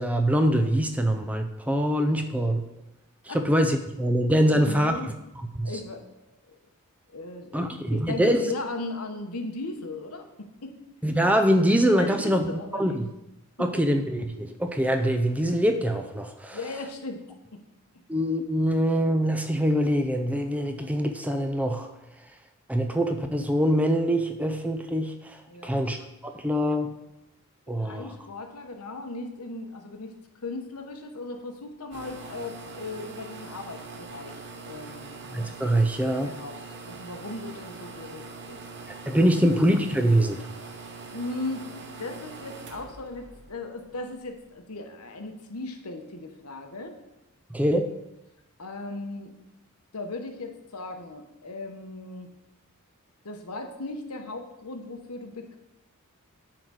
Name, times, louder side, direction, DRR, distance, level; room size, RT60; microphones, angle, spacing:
voice 1, 0.0-2.6 3.3-4.9 5.6-5.7 7.5-8.4 11.0-13.1 13.6-16.6 18.1-21.9 22.7-25.4 25.6-26.0 26.2-26.9 27.7-28.1 35.3-36.3 39.1-40.4 47.5-47.9, equal, 5° right, 6 dB, 0.5 m, -24 dB
voice 2, 4.5-5.1 5.6-6.0 7.1-10.8 12.0-13.0 13.6-13.9 16.5-17.2 17.5-17.6 25.5-25.8 27.8-30.1 30.4-35.1 36.2-38.6 40.8-41.7 42.0-47.0 48.6-49.3 49.9-52.3 53.2-55.6, left 2 dB, 85° left, 4 dB, 1.1 m, -37 dB
sound 1, 31.9-44.3, right 4 dB, 55° right, 1.0 m, -43 dB
8.8 x 3.9 x 6.2 m, 0.91 s
head